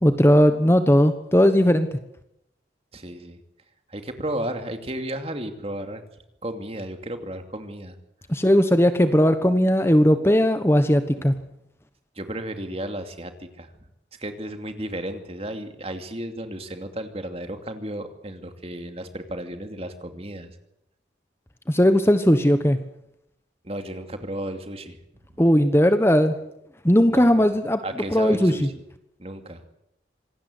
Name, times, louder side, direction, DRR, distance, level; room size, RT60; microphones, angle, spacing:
voice 1, 0.0-1.9 8.3-11.4 21.7-22.8 25.4-26.4 26.8-27.8 28.1-28.7, equal, 15° left, 9 dB, 1.2 m, -18 dB
voice 2, 2.9-3.4 3.9-6.0 6.4-7.9 12.2-13.7 14.2-20.5 23.6-25.0 27.1-27.5 27.8-28.7 29.2-29.6, right 1 dB, 35° right, 7 dB, 2.6 m, -33 dB
26.5 x 19.0 x 8.0 m, 0.80 s
head